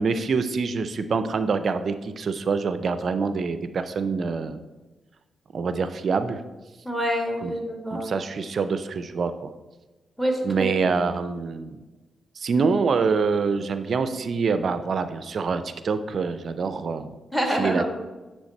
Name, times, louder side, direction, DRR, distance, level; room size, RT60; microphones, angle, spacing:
voice 1, 0.0-4.6 5.5-6.4 7.4-7.5 7.9-9.5 10.4-11.8 12.4-17.1 17.5-17.8, right 5 dB, 60° right, 11 dB, 0.4 m, -25 dB
voice 2, 6.8-8.1 10.2-10.7 17.3-17.9, equal, ahead, 2 dB, 1.9 m, -26 dB
9.5 x 3.3 x 4.2 m, 1.2 s
supercardioid pair, 55°, 0 cm